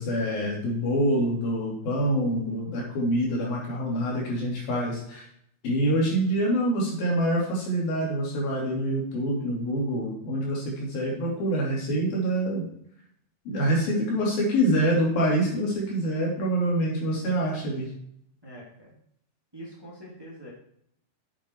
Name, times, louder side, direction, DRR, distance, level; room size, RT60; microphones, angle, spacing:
voice 1, 0.0-5.3 5.6-12.6 13.5-17.9, right 1 dB, 85° left, -3 dB, 4.9 m, -26 dB
voice 2, 17.0-17.4 18.4-18.9 19.5-20.5, equal, 5° right, -4 dB, 2.5 m, -45 dB
8.6 x 7.7 x 4.7 m, 0.69 s
omnidirectional pair, 4.0 m